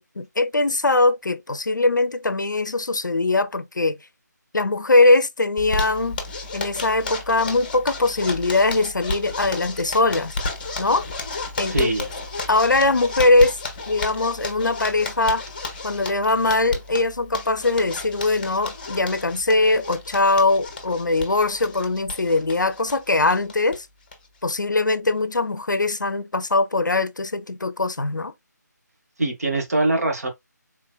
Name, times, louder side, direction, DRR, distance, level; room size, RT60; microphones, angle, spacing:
voice 1, 0.0-4.0 4.5-6.2 6.5-10.4 10.8-11.1 11.6-11.9 12.5-13.6 13.9-15.4 15.8-23.9 24.4-28.3, left 2 dB, 80° left, 0.5 m, -21 dB
Zipper (clothing), 5.6-23.8 24.1-24.2 24.5-24.6 24.9-25.4, left 3 dB, 30° left, 0.8 m, -33 dB
voice 2, 11.7-12.1 29.2-30.3, right 2 dB, 55° right, 1.3 m, -22 dB
3.8 x 2.9 x 2.3 m
figure-of-eight pair, 155°, 10 cm